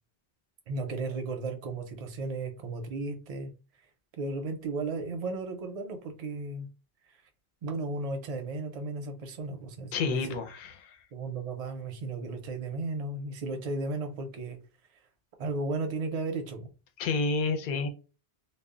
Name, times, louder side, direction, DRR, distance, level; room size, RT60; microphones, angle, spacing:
voice 1, 0.7-3.5 4.2-6.7 7.6-10.4 11.1-14.6 15.4-16.7, right 3 dB, 50° right, 0.5 m, -34 dB
voice 2, 9.9-11.0 17.0-17.9, left 4 dB, 60° left, 0.6 m, -30 dB
2.1 x 2.0 x 3.6 m
omnidirectional pair, 1.0 m